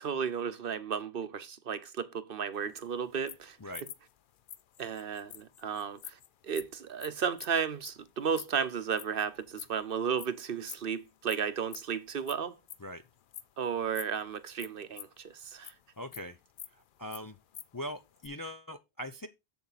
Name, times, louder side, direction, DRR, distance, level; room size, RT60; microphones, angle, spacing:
voice 1, 0.0-3.6 4.8-6.2 6.4-12.6 13.6-15.7, right 7 dB, 60° right, 1.0 m, -34 dB
sound 1, 2.6-9.8 10.2-10.4 10.7-11.4 11.7-14.2 14.5-15.8 16.1-17.8 18.0-18.3, left 9 dB, 60° left, 0.7 m, -47 dB
voice 2, 16.0-16.4 16.7-17.4 17.7-19.3, equal, 30° left, 0.4 m, -41 dB
7.4 x 7.0 x 4.0 m
omnidirectional pair, 1.1 m